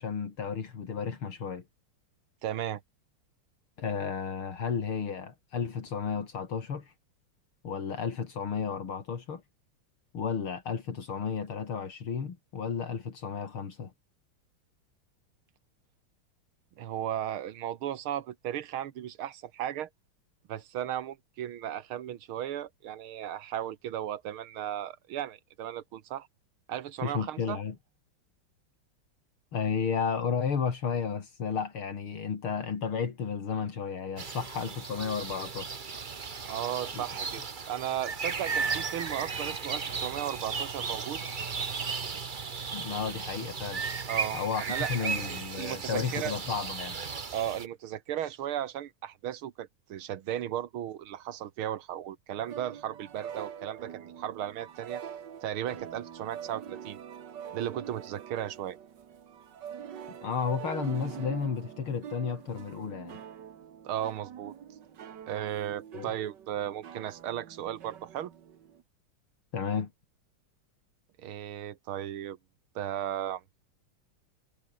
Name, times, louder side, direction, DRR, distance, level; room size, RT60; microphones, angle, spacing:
voice 1, 0.0-1.6 3.8-6.9 7.6-9.4 10.1-13.9 27.0-27.8 29.5-35.9 36.9-37.0 42.7-43.8 44.3-44.6 44.9-47.0 60.2-63.2 65.9-66.1 69.5-69.9, left 6 dB, 75° left, 3.4 m, -33 dB
voice 2, 2.4-2.8 16.8-19.9 20.5-26.3 26.7-27.6 36.5-41.2 44.1-46.4 47.3-55.0 55.4-57.0 57.5-58.8 63.8-64.5 65.3-68.3 71.2-72.4 72.8-73.4, right 11 dB, 75° right, 2.0 m, -35 dB
sound 1, 34.2-47.7, right 5 dB, 35° right, 0.9 m, -35 dB
sound 2, 52.4-68.8, right 8 dB, 55° right, 1.9 m, -44 dB
omnidirectional pair, 2.4 m